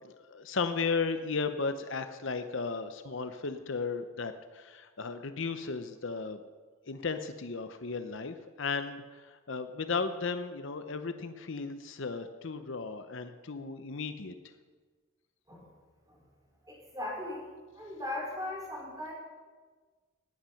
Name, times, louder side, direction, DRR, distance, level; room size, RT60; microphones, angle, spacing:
voice 1, 0.0-6.4 6.9-14.3, left 4 dB, 60° left, 9 dB, 0.7 m, -35 dB
voice 2, 16.6-17.5 17.7-19.1, left 1 dB, 15° right, -3 dB, 4.2 m, -38 dB
19.0 x 9.0 x 5.8 m, 1.4 s
head